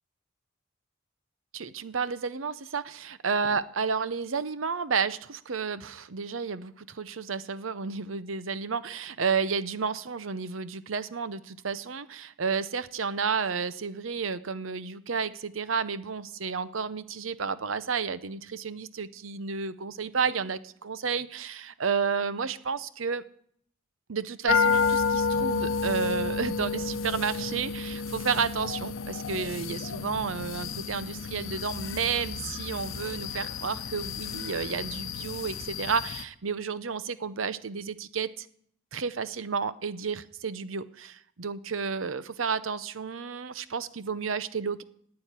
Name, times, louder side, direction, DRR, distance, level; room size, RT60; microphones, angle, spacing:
voice 1, 1.5-23.2 24.1-38.5 38.9-44.8, right 5 dB, 85° right, 15 dB, 0.8 m, -31 dB
sound 1, 24.5-36.2, left 5 dB, 85° left, 0.8 m, -31 dB
12.0 x 8.6 x 10.0 m, 0.66 s
head